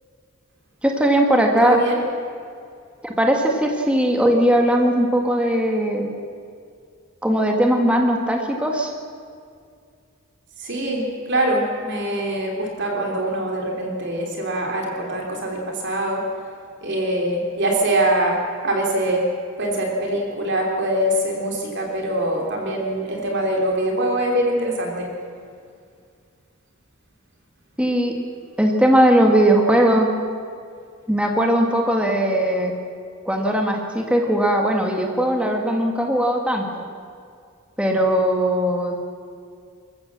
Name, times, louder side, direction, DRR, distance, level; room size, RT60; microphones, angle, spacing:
voice 1, 0.8-1.8 3.0-6.1 7.2-8.9 27.8-28.1 28.6-30.1 31.1-32.7 33.3-36.8 37.8-39.0, right 1 dB, 5° right, 1 dB, 1.8 m, -19 dB
voice 2, 1.6-2.0 10.6-16.2 16.8-19.2 19.6-25.1, right 1 dB, 50° right, 0 dB, 3.2 m, -23 dB
26.5 x 14.5 x 7.4 m, 2.3 s
head